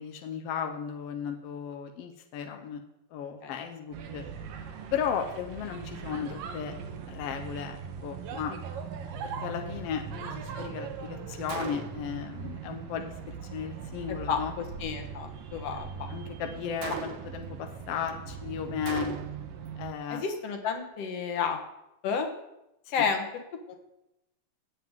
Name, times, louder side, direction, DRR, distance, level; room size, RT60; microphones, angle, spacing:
voice 1, 0.0-2.8 3.1-4.2 4.9-6.7 7.1-8.6 9.2-14.5 16.1-19.2 19.8-20.2, left 7 dB, 80° left, 5 dB, 1.3 m, -35 dB
sound 1, 3.9-19.9, right 6 dB, 90° right, 2.7 m, -40 dB
Gunshot gunfire, 11.5-12.2 16.8-17.5 18.9-19.5, right 7 dB, 70° right, 2.0 m, -38 dB
voice 2, 14.1-16.1 20.1-21.6 22.0-22.3 22.9-23.3 23.7-23.8, left 6 dB, 60° left, 4 dB, 2.0 m, -31 dB
17.0 x 7.7 x 3.7 m, 0.88 s
omnidirectional pair, 3.8 m